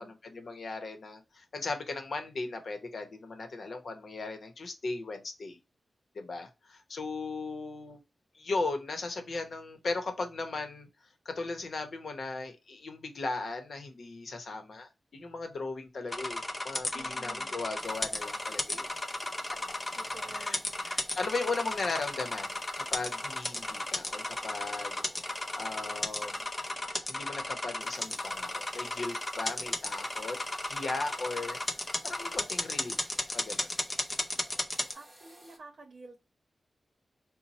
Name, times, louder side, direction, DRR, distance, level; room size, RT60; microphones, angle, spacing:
voice 1, 0.0-5.6 6.1-8.0 8.3-10.9 11.2-18.9 20.3-20.6 20.9-25.0 25.6-26.5 27.1-30.4 30.7-31.6 32.0-33.7, left 3 dB, 65° left, 0.8 m, -37 dB
sound 1, 16.1-34.9, left 2 dB, 30° left, 0.6 m, -35 dB
voice 2, 16.9-17.5 19.9-20.7 34.9-36.2, right 3 dB, 65° right, 0.8 m, -50 dB
sound 2, 17.8-35.6, equal, 5° right, 0.9 m, -55 dB
4.1 x 2.1 x 4.1 m
wide cardioid pair, 80°, 0 cm